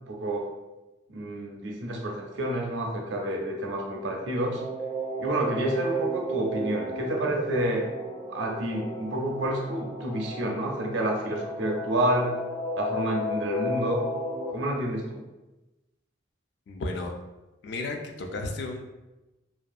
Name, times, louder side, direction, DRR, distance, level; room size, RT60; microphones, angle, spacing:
voice 1, 0.1-0.5 1.1-4.6 5.2-7.9 8.3-12.4 12.8-14.0 14.5-15.2, right 1 dB, 65° right, 0 dB, 0.5 m, -29 dB
sound 1, 3.9-14.5, right 1 dB, 5° left, 0.6 m, -34 dB
voice 2, 16.7-17.1 17.6-18.9, left 2 dB, 55° left, 3 dB, 0.3 m, -33 dB
2.6 x 2.2 x 2.3 m, 1.0 s
head